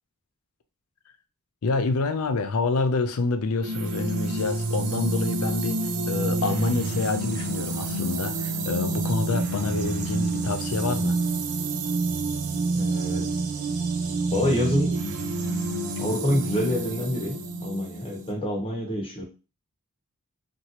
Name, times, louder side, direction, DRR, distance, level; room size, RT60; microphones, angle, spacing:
voice 1, 1.6-11.2, left 3 dB, 80° left, 9 dB, 0.5 m, -27 dB
sound 1, 3.6-18.3, right 3 dB, 75° right, 0.5 m, -28 dB
voice 2, 12.7-13.3 14.3-15.0 16.0-19.3, left 1 dB, 25° left, 0 dB, 0.9 m, -27 dB
3.0 x 2.6 x 2.8 m, 0.32 s
head